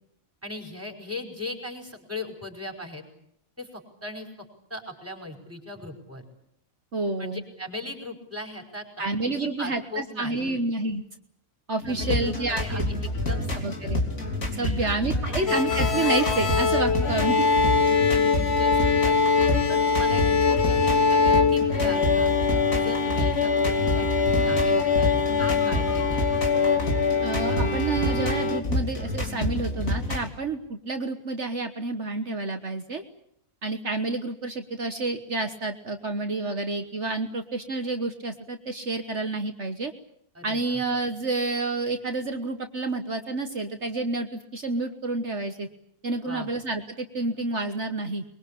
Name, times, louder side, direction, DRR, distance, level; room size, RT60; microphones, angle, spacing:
voice 1, 0.4-3.0 3.6-6.2 7.2-10.6 11.8-13.9 14.6-15.0 15.3-15.4 17.8-19.2 19.7-22.3 22.7-25.1 25.4-26.3 40.4-40.8 46.2-46.5, left 2 dB, 10° right, 3 dB, 5.1 m, -38 dB
voice 2, 6.9-7.4 9.0-11.0 11.7-12.9 13.6-14.0 14.5-17.5 27.2-33.0 33.6-39.9 40.4-45.7 46.0-48.2, right 3 dB, 55° right, 7 dB, 1.6 m, -29 dB
sound 1, 11.8-30.3, left 1 dB, 65° left, 3.8 m, -29 dB
sound 2, 15.5-28.6, left 4 dB, 45° left, 1.7 m, -23 dB
23.5 x 22.5 x 8.4 m, 0.73 s
omnidirectional pair, 1.5 m